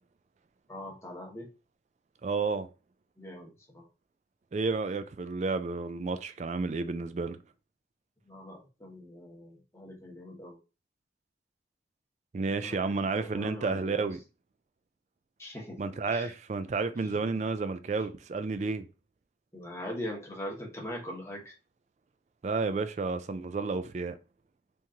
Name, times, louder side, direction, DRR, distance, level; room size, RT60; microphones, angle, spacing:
voice 1, 0.7-1.5 3.2-3.9 8.3-10.5 12.6-14.2 15.4-15.8 16.1-16.3 19.5-21.5, left 1 dB, 15° left, 0.9 m, -41 dB
voice 2, 2.2-2.7 4.5-7.4 12.3-14.2 15.8-18.9 22.4-24.2, right 4 dB, 40° right, 0.3 m, -31 dB
3.6 x 2.9 x 2.7 m
head